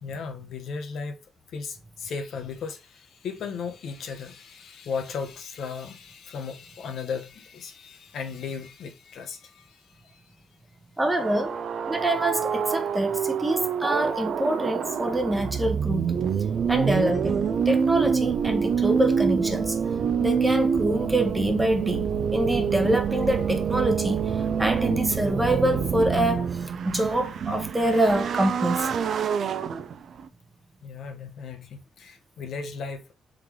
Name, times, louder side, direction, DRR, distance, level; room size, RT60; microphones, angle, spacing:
voice 1, 0.0-1.2 1.5-10.3 30.8-33.0, left 5 dB, 70° left, 0.8 m, -36 dB
voice 2, 11.0-11.6 11.9-16.2 16.7-19.8 20.2-28.9, right 1 dB, 10° right, 0.9 m, -26 dB
sound 1, 11.2-30.3, right 6 dB, 60° right, 0.4 m, -26 dB
3.8 x 3.2 x 2.9 m
cardioid pair, 90°, 0 cm